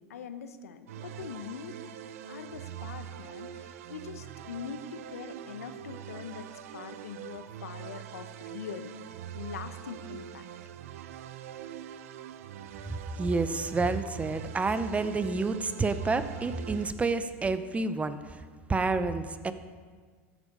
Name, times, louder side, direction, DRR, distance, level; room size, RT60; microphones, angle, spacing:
voice 1, 0.0-1.8 2.3-8.9 9.3-10.4, left 6 dB, 90° left, 10 dB, 0.8 m, -42 dB
sound 1, 0.9-16.9, right 10 dB, 75° right, 0.6 m, -43 dB
voice 2, 12.8-19.5, right 3 dB, 15° right, 12 dB, 0.7 m, -29 dB
13.5 x 8.5 x 5.4 m, 1.5 s
hypercardioid pair, 95°, 8 cm